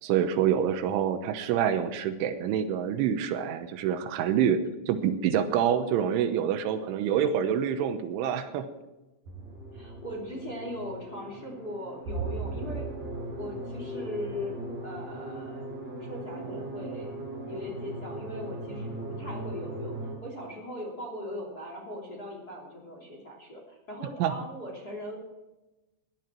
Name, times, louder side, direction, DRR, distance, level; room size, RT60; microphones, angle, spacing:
voice 1, 0.0-4.6 4.9-8.7 24.2-24.3, right 9 dB, 85° right, 9 dB, 3.4 m, -26 dB
sound 1, 9.2-20.1, right 2 dB, 45° right, 6.6 m, -38 dB
voice 2, 9.7-12.9 13.4-14.5 14.8-15.7 16.0-17.1 17.4-25.2, left 1 dB, 25° left, -1 dB, 2.6 m, -39 dB
19.0 x 11.0 x 4.5 m, 1.0 s
omnidirectional pair, 5.5 m